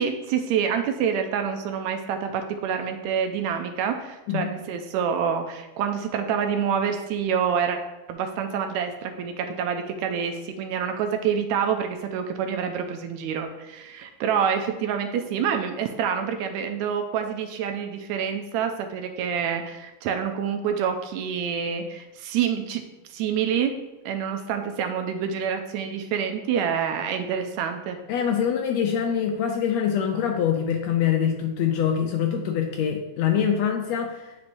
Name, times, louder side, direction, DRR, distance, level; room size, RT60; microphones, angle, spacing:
voice 1, 0.0-7.8 8.1-22.8 23.1-23.8 24.1-28.0, right 7 dB, 80° right, 6 dB, 1.8 m, -27 dB
voice 2, 28.1-34.4, left 8 dB, 80° left, 3 dB, 1.6 m, -24 dB
10.5 x 4.2 x 2.6 m, 1.0 s
omnidirectional pair, 3.5 m